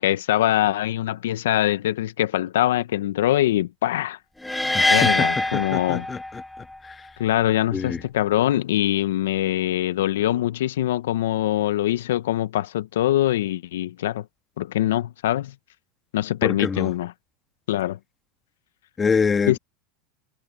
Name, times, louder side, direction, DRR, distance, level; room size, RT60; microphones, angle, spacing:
voice 1, 0.0-4.2 4.9-6.1 7.2-14.2 14.6-15.5 16.1-17.1 17.7-18.0 19.5-19.6, left 13 dB, 80° left, 1.2 m, -23 dB
sound 1, 4.4-6.6, left 1 dB, 5° left, 2.4 m, -23 dB
voice 2, 4.7-6.4 6.8-7.0 7.7-8.0 16.4-16.9 19.0-19.6, left 5 dB, 25° left, 1.7 m, -25 dB
hypercardioid pair, 90°, 0 cm